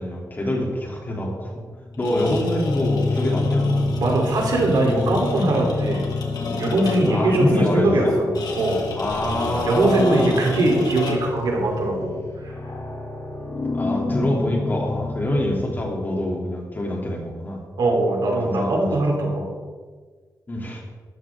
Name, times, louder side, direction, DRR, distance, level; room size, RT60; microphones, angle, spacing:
voice 1, 0.0-1.6 2.0-3.8 7.1-8.1 8.9-10.4 13.7-17.6 18.4-18.7 20.5-20.8, left 1 dB, 30° left, -1 dB, 3.2 m, -25 dB
sound 1, 1.8-16.4, left 3 dB, 50° left, 2.6 m, -29 dB
sound 2, 1.9-7.3 8.3-11.4, left 3 dB, 85° left, 2.1 m, -32 dB
voice 2, 4.0-6.1 6.6-8.8 9.6-12.5 17.8-19.5, right 2 dB, 85° right, -1 dB, 3.7 m, -21 dB
13.5 x 13.5 x 3.8 m, 1.5 s
wide cardioid pair, 110°, 7 cm